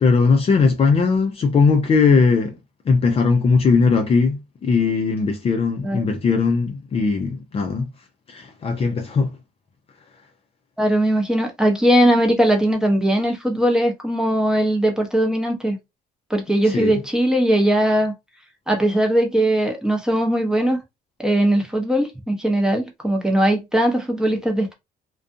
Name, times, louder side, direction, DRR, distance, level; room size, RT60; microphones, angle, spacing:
voice 1, 0.0-2.6 2.9-7.9 8.3-9.4 16.7-17.0, left 4 dB, 35° left, 0.5 m, -19 dB
voice 2, 10.8-15.8 16.3-18.1 18.7-20.8 21.2-24.7, right 1 dB, 5° right, 0.8 m, -19 dB
2.4 x 2.3 x 2.5 m
cardioid pair, 110°, 17 cm